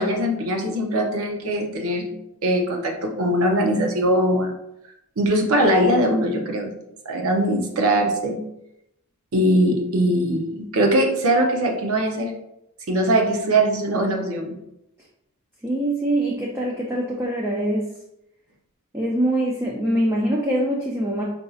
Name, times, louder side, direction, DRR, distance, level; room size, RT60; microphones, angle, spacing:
voice 1, 0.0-2.1 2.4-4.5 5.2-6.8 7.1-8.4 9.3-12.3 12.9-14.5, right 1 dB, 70° right, 2 dB, 0.6 m, -21 dB
voice 2, 15.6-17.9 18.9-21.2, right 1 dB, 10° right, -3 dB, 0.4 m, -23 dB
5.0 x 2.6 x 2.4 m, 0.83 s
head